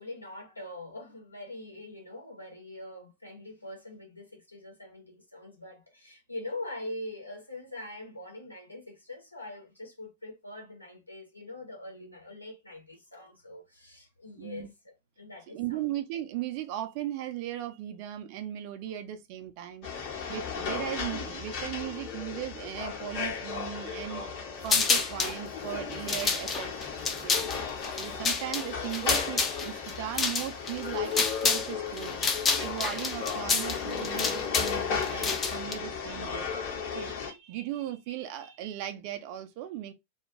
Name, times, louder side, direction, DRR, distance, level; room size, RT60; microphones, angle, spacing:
voice 1, 0.0-15.8, left 1 dB, 85° left, 1.0 m, -43 dB
voice 2, 14.4-14.7 15.5-26.7 27.2-27.5 28.0-32.3 32.6-36.5 36.9-39.9, right 12 dB, 45° right, 0.4 m, -37 dB
sound 1, 19.8-37.3, left 6 dB, 45° left, 1.0 m, -35 dB
sound 2, 24.7-25.4 25.9-31.7 32.0-35.7, left 4 dB, 20° left, 0.5 m, -29 dB
2.3 x 2.2 x 3.0 m
figure-of-eight pair, 90°, 0 cm